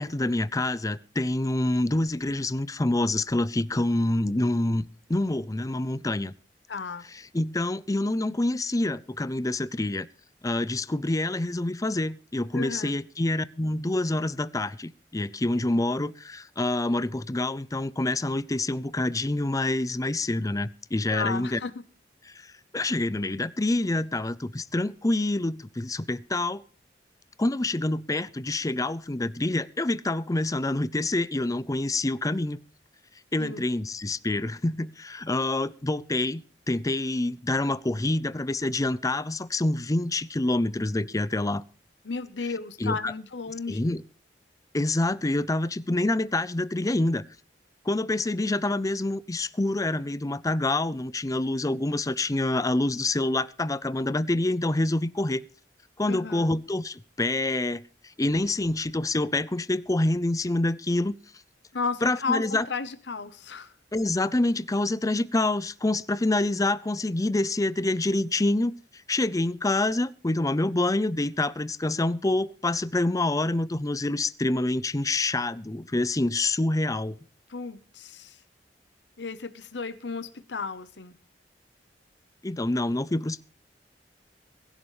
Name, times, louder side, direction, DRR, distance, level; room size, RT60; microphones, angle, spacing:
voice 1, 0.0-4.8 5.1-6.3 7.3-10.1 10.4-21.6 22.7-26.6 27.4-32.6 33.3-41.6 42.8-43.1 43.7-44.0 44.7-47.2 47.9-55.4 56.0-57.8 58.2-61.1 62.0-62.7 63.9-68.7 69.1-77.2 82.4-83.5, left 2 dB, 20° left, 0.6 m, -27 dB
voice 2, 6.7-7.0 12.5-12.9 21.1-21.8 33.4-33.6 42.0-43.8 56.1-56.5 61.7-63.7 77.5-78.4 79.2-81.1, left 4 dB, 75° left, 1.0 m, -33 dB
22.0 x 11.0 x 3.2 m
head